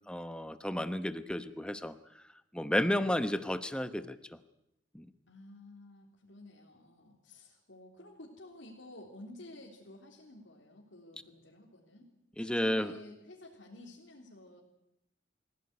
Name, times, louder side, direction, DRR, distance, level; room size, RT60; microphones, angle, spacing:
voice 1, 0.1-1.9 2.5-4.2 4.9-5.1 12.4-12.9, left 1 dB, 5° left, 11 dB, 1.0 m, -32 dB
voice 2, 5.3-12.1 12.4-14.6, left 1 dB, 75° left, -3 dB, 3.7 m, -52 dB
24.0 x 16.5 x 9.7 m, 0.86 s
head